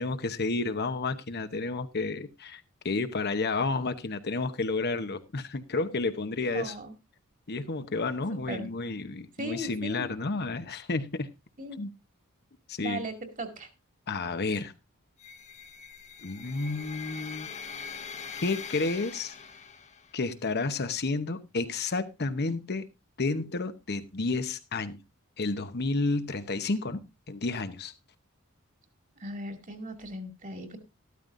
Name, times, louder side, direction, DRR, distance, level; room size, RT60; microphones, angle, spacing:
voice 1, 0.0-6.8 7.5-11.3 11.8-11.9 12.7-13.0 14.1-14.7 16.2-17.5 18.4-19.3 20.1-22.9 23.2-25.0 25.4-27.0 27.3-27.9, left 3 dB, 50° left, 0.9 m, -31 dB
voice 2, 6.5-6.9 8.3-8.7 9.4-10.1 11.6-11.8 12.8-13.7 29.2-30.8, right 1 dB, 40° right, 2.3 m, -38 dB
sound 1, 15.2-20.2, left 5 dB, 35° left, 1.2 m, -42 dB
13.5 x 13.0 x 2.6 m
head